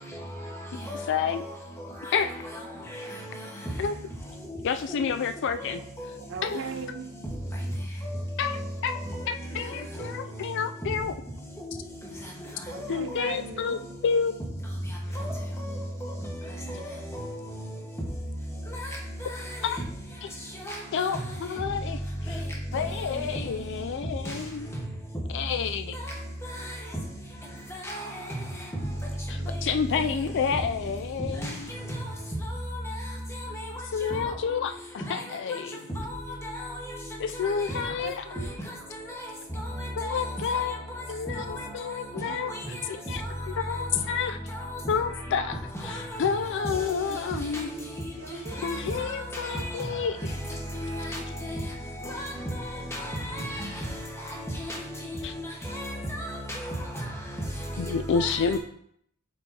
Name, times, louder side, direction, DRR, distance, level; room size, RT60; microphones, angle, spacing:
voice 1, 0.1-0.6 0.8-1.6 2.0-3.5 4.5-5.0 5.5-6.1 6.4-6.6 8.0-10.5 11.6-11.8 12.7-13.3 15.1-17.7 18.7-19.7 20.5-21.3 22.3-22.4 22.7-23.1 24.2-24.4 25.9-26.8 27.7-28.4 29.4-30.1 31.4-32.1 32.4-33.0 33.3-34.3 35.1-35.6 35.9-37.0 37.3-37.9 38.7-39.3 39.5-41.0 41.3-42.8 43.1-43.8 44.5-44.8 45.3-47.2 47.5-48.0 48.5-58.6, equal, 15° left, 1.5 m, -35 dB
voice 2, 1.1-1.4 2.1-2.3 3.8-3.9 4.6-5.8 6.4-6.6 8.4-9.0 9.3-11.1 12.9-14.3 19.6-19.8 20.9-22.4 22.7-24.7 25.3-26.0 29.3-31.7 33.9-34.7 35.1-35.8 37.2-38.2 40.0-40.8 41.1-42.5 42.9-43.2 43.5-44.4 44.9-45.6 45.8-47.7 48.6-50.2 55.2-55.3 57.8-58.6, left 6 dB, 55° left, 0.4 m, -29 dB
voice 3, 6.3-7.1 12.7-13.9 38.0-38.6 41.5-41.7 42.1-42.8 47.1-48.6 48.9-49.1, right 5 dB, 60° right, 0.6 m, -40 dB
8.2 x 5.2 x 2.9 m
head